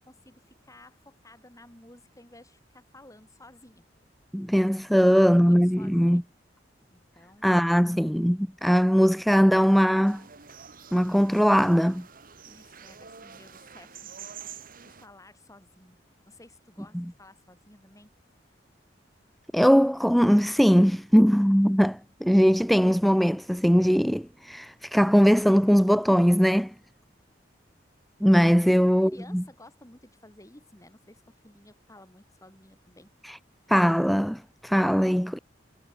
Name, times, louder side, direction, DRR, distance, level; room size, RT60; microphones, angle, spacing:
voice 1, 0.0-3.9 4.9-6.2 6.9-7.9 12.4-18.1 28.6-33.1, left 1 dB, 20° left, 6.3 m, -53 dB
voice 2, 4.3-6.2 7.4-10.2 10.9-12.1 16.9-17.0 19.5-26.7 28.2-29.4 33.2-33.4 33.7-35.4, equal, ahead, 0.5 m, -20 dB
sound 1, 10.1-15.1, right 7 dB, 50° right, 2.1 m, -47 dB
head